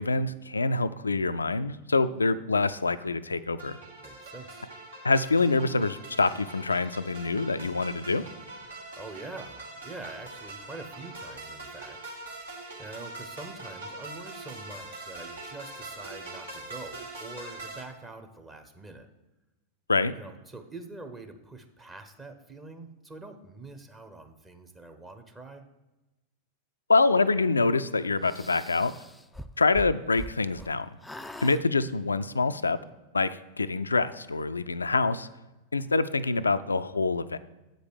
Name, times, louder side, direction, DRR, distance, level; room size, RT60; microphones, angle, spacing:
voice 1, 0.0-3.8 5.0-8.2 19.9-20.1 26.9-28.9 29.6-30.9 31.4-32.8 33.1-35.3 35.7-37.4, left 3 dB, 80° left, 13 dB, 0.3 m, -25 dB
sound 1, 3.6-17.8, right 2 dB, 70° right, 1.8 m, -43 dB
voice 2, 4.0-4.7 9.0-12.0 12.2-19.1 20.1-25.6, right 2 dB, 15° right, 5 dB, 0.9 m, -45 dB
sound 2, 28.2-30.7 31.0-31.6, equal, 5° left, 0.4 m, -42 dB
8.1 x 5.2 x 6.3 m, 1.0 s
figure-of-eight pair, 90°, 0 cm